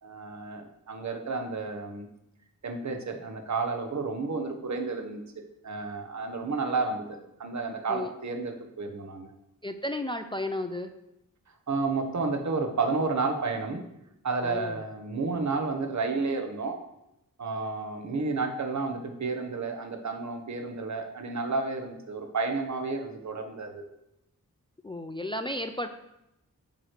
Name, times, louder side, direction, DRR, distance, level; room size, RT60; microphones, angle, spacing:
voice 1, 0.0-2.1 2.6-5.2 5.6-9.3 11.7-13.8 14.2-16.8 17.4-23.8, right 4 dB, 55° right, 4 dB, 1.0 m, -31 dB
voice 2, 9.6-10.9 14.4-14.8 24.8-25.9, left 1 dB, 15° left, 7 dB, 0.3 m, -33 dB
8.8 x 3.1 x 6.5 m, 0.85 s
wide cardioid pair, 110°, 34 cm